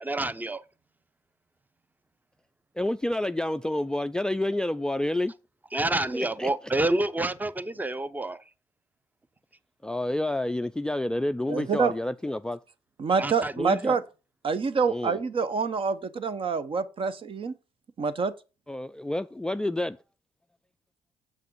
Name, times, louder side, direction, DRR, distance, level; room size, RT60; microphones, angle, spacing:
voice 1, 0.0-0.6 5.7-8.4 13.2-13.5, right 2 dB, 15° right, 0.8 m, -28 dB
voice 2, 2.8-5.3 6.1-6.5 9.8-12.6 13.6-14.0 14.9-15.2 18.7-20.0, left 1 dB, 5° left, 0.4 m, -29 dB
voice 3, 11.5-11.9 13.0-14.0 14.4-17.5 18.0-18.3, right 5 dB, 45° right, 0.9 m, -26 dB
7.4 x 5.8 x 4.7 m
supercardioid pair, 60°, 12 cm